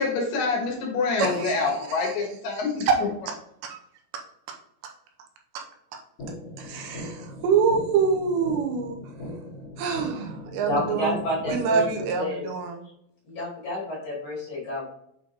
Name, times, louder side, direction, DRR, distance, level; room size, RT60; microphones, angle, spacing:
voice 1, 0.0-2.9, left 4 dB, 65° left, -1 dB, 2.4 m, -26 dB
voice 2, 1.2-2.2 2.9-3.0 3.3-3.4 3.6-3.8 5.5-5.6 6.6-9.0 9.8-12.8, right 5 dB, 85° right, 2 dB, 2.9 m, -26 dB
sound 1, 6.2-12.2, left 1 dB, 80° left, 1.3 m, -39 dB
voice 3, 10.6-11.8 12.2-12.5 13.2-14.9, left 1 dB, 45° left, -6 dB, 2.5 m, -29 dB
7.3 x 4.4 x 2.9 m, 0.73 s
omnidirectional pair, 5.2 m